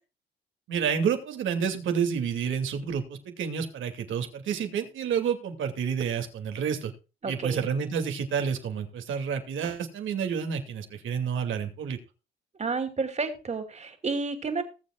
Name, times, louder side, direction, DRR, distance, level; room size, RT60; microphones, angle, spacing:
voice 1, 0.7-6.9 7.3-12.0, right 7 dB, 75° right, 5 dB, 2.6 m, -29 dB
voice 2, 7.2-7.6 12.6-14.6, right 4 dB, 35° right, 7 dB, 2.9 m, -31 dB
20.0 x 7.6 x 2.4 m, 0.31 s
cardioid pair, 90°, 20 cm